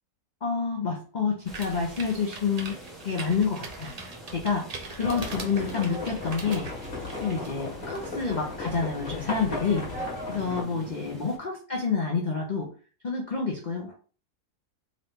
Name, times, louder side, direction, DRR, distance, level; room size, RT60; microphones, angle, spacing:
voice 1, 0.4-3.9 4.3-6.7 7.2-9.9 10.3-12.7 13.0-14.0, left 5 dB, 65° left, 0 dB, 0.4 m, -28 dB
sound 1, 1.4-11.4, right 1 dB, ahead, 1.0 m, -46 dB
sound 2, 1.4-7.5, right 3 dB, 85° right, 0.3 m, -41 dB
Livestock farm animals working animals, 5.0-10.6, left 2 dB, 35° left, 1.4 m, -36 dB
3.9 x 2.7 x 3.4 m, 0.39 s
omnidirectional pair, 1.7 m